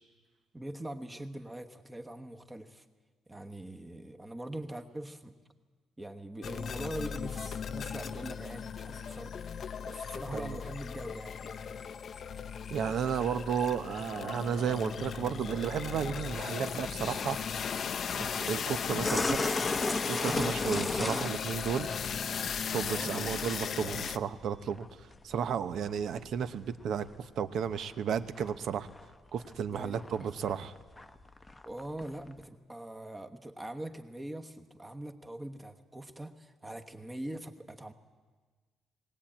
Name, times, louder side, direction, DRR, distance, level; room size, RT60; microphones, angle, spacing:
voice 1, 0.5-2.8 3.3-5.3 6.0-9.3 9.8-11.7 22.8-23.4 29.7-30.3 31.7-37.9, right 1 dB, 10° right, 6 dB, 1.2 m, -42 dB
sound 1, 6.4-24.2, left 7 dB, 45° left, 0.7 m, -37 dB
voice 2, 10.3-10.6 12.7-17.4 18.2-19.4 20.1-21.9 22.7-28.9 29.3-30.7, right 7 dB, 60° right, 12 dB, 0.9 m, -33 dB
sound 2, 19.0-22.4 22.7-23.0 23.4-25.3 25.9-26.8 27.1-28.6 28.9-29.1 29.4-32.4, left 2 dB, 10° left, 0.9 m, -34 dB
20.5 x 18.0 x 8.7 m, 1.4 s
cardioid pair, 145°, 0 cm